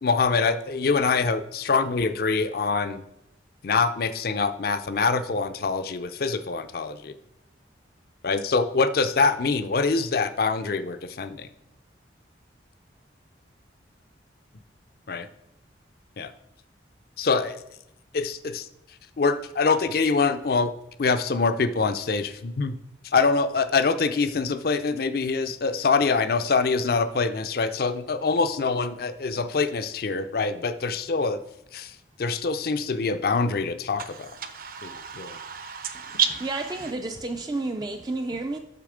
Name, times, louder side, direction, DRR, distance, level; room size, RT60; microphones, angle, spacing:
voice 1, 0.0-3.0 3.6-7.1 8.2-11.5 15.1-15.3 16.2-16.3 17.2-17.6 18.1-18.7 19.2-20.7 21.0-22.8 23.0-31.4 31.7-34.3 34.8-35.4, left 4 dB, 50° left, 0.5 m, -24 dB
voice 2, 34.0-36.9, right 7 dB, 50° right, 0.7 m, -31 dB
voice 3, 35.9-38.6, right 2 dB, 20° right, 0.3 m, -31 dB
6.7 x 6.4 x 4.9 m
head